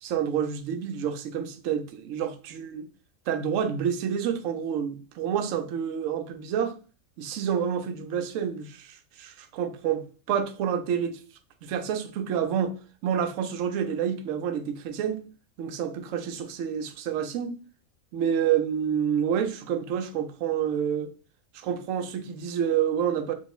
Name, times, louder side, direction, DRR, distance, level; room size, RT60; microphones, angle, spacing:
voice 1, 0.0-2.9 3.3-6.7 7.2-11.2 11.6-12.7 13.0-15.2 15.6-17.5 18.1-21.1 21.5-23.3, right 8 dB, 70° right, 0.9 m, -28 dB
4.3 x 2.7 x 3.0 m
omnidirectional pair, 1.5 m